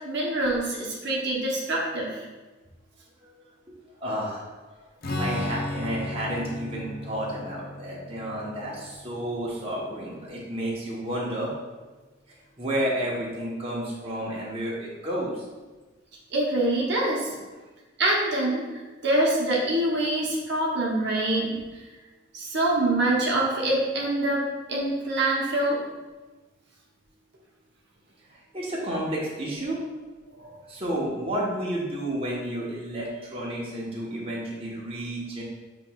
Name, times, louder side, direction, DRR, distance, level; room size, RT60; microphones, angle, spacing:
voice 1, 0.0-2.2 16.3-17.3 18.0-18.6 19.0-21.6 22.3-24.4 24.7-25.8 30.4-30.5, right 1 dB, 55° right, -4 dB, 0.8 m, -25 dB
voice 2, 4.0-4.4 5.2-11.5 12.6-15.4 17.3-17.4 28.3-29.8 30.7-35.4, right 1 dB, 30° right, -6 dB, 0.9 m, -31 dB
Strum, 5.0-10.6, left 1 dB, 45° left, 0.5 m, -35 dB
7.5 x 2.9 x 2.3 m, 1.2 s
head